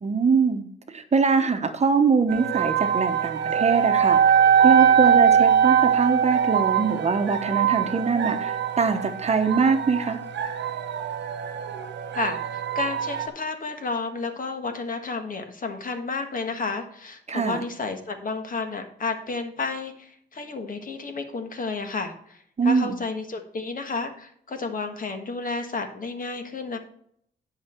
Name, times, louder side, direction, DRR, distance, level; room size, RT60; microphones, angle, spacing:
voice 1, 0.0-4.2 4.6-10.2 17.3-17.6 22.6-23.0, right 5 dB, 35° right, 7 dB, 1.0 m, -23 dB
sound 1, 2.3-13.3, right 8 dB, 75° right, 1.0 m, -22 dB
voice 2, 12.1-26.8, left 4 dB, 50° left, 6 dB, 1.6 m, -31 dB
10.0 x 5.7 x 4.5 m, 0.66 s
cardioid pair, 115°, 18 cm